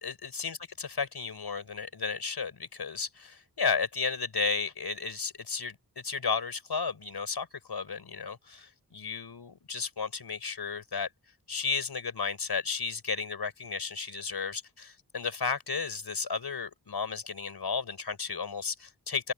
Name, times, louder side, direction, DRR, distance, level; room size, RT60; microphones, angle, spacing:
voice 1, 0.0-11.1 11.5-19.3, left 5 dB, 70° left, 5.0 m, -33 dB
open air
cardioid pair, 45°, 40 cm